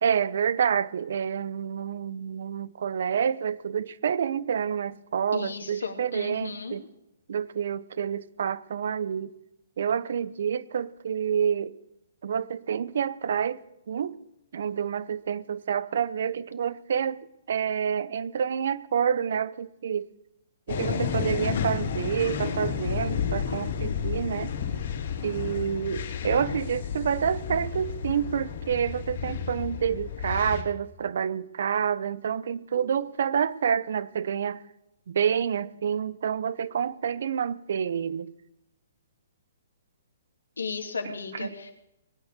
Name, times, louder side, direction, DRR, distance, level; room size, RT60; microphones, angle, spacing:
voice 1, 0.0-6.8 7.3-9.3 9.8-11.8 12.2-13.6 13.9-14.2 14.5-17.2 17.5-20.1 20.7-24.5 25.2-34.6 35.1-38.3 41.0-41.5, right 8 dB, 65° right, 18 dB, 0.8 m, -28 dB
voice 2, 5.3-6.8 40.6-41.7, left 5 dB, 80° left, 4 dB, 2.7 m, -35 dB
sound 1, 20.7-30.6, left 7 dB, 60° left, 3.2 m, -31 dB
19.0 x 9.7 x 6.7 m, 0.85 s
figure-of-eight pair, 125°, 0 cm